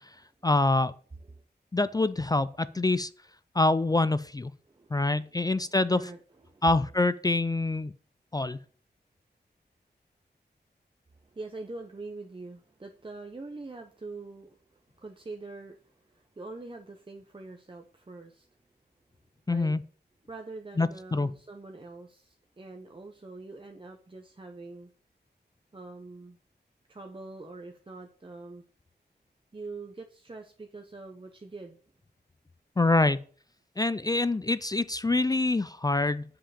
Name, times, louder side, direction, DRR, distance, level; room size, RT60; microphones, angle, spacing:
voice 1, 0.4-0.9 1.7-3.1 3.6-4.5 4.9-6.0 6.6-7.9 8.3-8.6 19.5-19.8 20.8-21.3 32.8-33.2 33.8-36.2, left 2 dB, 20° left, 15 dB, 0.3 m, -25 dB
voice 2, 4.7-6.6 11.1-18.5 19.5-19.8 20.3-24.9 25.7-26.4 26.9-28.6 29.5-31.8, right 3 dB, 30° right, 3 dB, 0.8 m, -44 dB
7.5 x 5.8 x 4.9 m, 0.44 s
wide cardioid pair, 95°, 18 cm